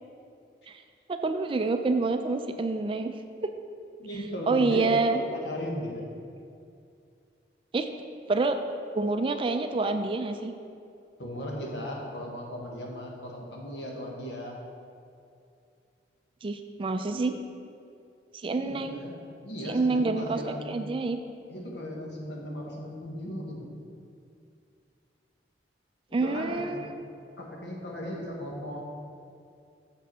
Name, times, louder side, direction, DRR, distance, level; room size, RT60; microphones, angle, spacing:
voice 1, 1.1-3.1 3.4-3.5 4.5-5.2 7.7-7.9 8.3-8.6 8.9-10.5 16.4-17.3 18.3-19.0 19.6-21.2 26.1-26.9, right 3 dB, 30° right, 7 dB, 0.3 m, -27 dB
voice 2, 4.0-6.0 11.2-14.6 18.6-19.2 19.4-20.9 21.5-23.6 26.2-26.8 27.4-28.8, equal, 75° left, -1 dB, 1.3 m, -36 dB
6.9 x 5.2 x 5.4 m, 2.5 s
head